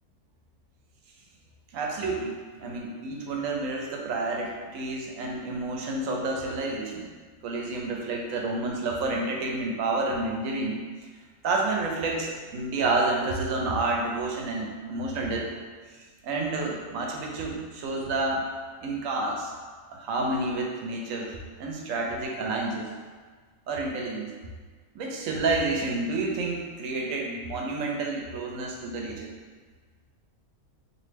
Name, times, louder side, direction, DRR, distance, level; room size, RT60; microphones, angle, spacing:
voice 1, 1.7-7.1 7.4-10.8 11.4-15.5 16.2-18.5 18.8-19.5 19.9-21.3 21.6-22.9 23.7-24.3 24.9-29.3, right 2 dB, 85° right, 0 dB, 1.0 m, -29 dB
3.1 x 2.7 x 3.3 m, 1.5 s
omnidirectional pair, 1.3 m